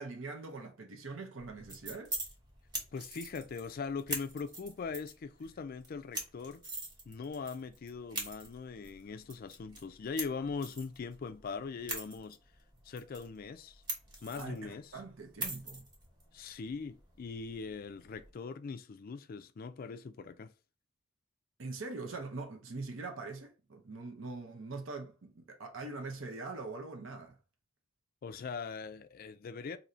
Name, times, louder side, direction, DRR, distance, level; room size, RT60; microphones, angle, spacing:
voice 1, 0.0-2.1 14.3-15.8 21.6-27.4, right 3 dB, 65° right, 0.7 m, -43 dB
sound 1, 1.4-18.3, right 1 dB, 20° right, 1.1 m, -45 dB
voice 2, 2.9-6.6 7.1-12.4 12.8-13.8 14.2-15.0 16.3-20.5 28.2-29.8, left 5 dB, 45° left, 0.3 m, -41 dB
2.7 x 2.6 x 4.3 m
head